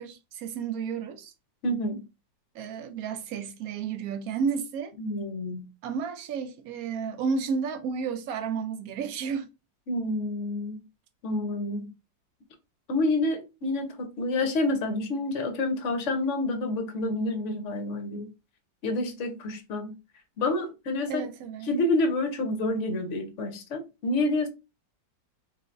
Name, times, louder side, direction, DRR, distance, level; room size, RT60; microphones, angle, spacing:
voice 1, 0.0-1.3 2.5-4.9 5.8-9.5 21.1-21.7, right 6 dB, 65° right, 0.9 m, -32 dB
voice 2, 1.6-2.0 5.0-5.7 9.9-10.8 11.2-11.9 12.9-18.3 18.8-20.0 20.4-21.2 21.6-24.5, left 2 dB, 55° left, 0.9 m, -28 dB
4.0 x 3.2 x 2.5 m
omnidirectional pair, 2.0 m